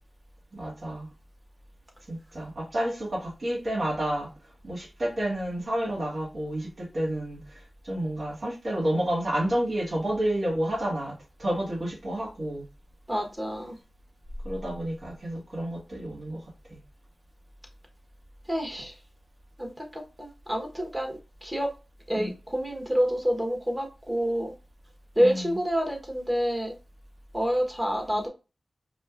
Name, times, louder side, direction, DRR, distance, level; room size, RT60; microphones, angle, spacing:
voice 1, 0.5-1.1 2.1-4.3 4.6-12.6 14.4-16.8 22.1-22.3 25.2-25.6 28.1-28.3, right 1 dB, 65° right, -3 dB, 1.7 m, -30 dB
voice 2, 13.1-13.8 18.5-18.9 19.6-21.7 22.1-24.5 25.1-26.7 27.3-28.3, equal, 20° right, 1 dB, 1.1 m, -28 dB
5.0 x 2.1 x 2.5 m, 0.29 s
cardioid pair, 50°, 0 cm